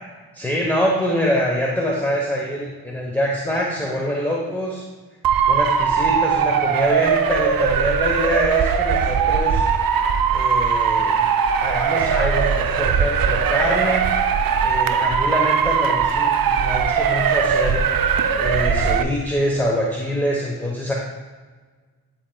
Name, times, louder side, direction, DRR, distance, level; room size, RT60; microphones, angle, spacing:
voice 1, 0.3-4.8 5.5-9.6 10.3-11.2 11.6-14.1 14.6-17.8 18.4-20.9, equal, 5° left, -2 dB, 0.9 m, -24 dB
Motor vehicle (road) / Siren, 5.2-19.0, right 6 dB, 65° right, 0.6 m, -20 dB
10.5 x 4.5 x 2.3 m, 1.4 s
cardioid pair, 60°, 38 cm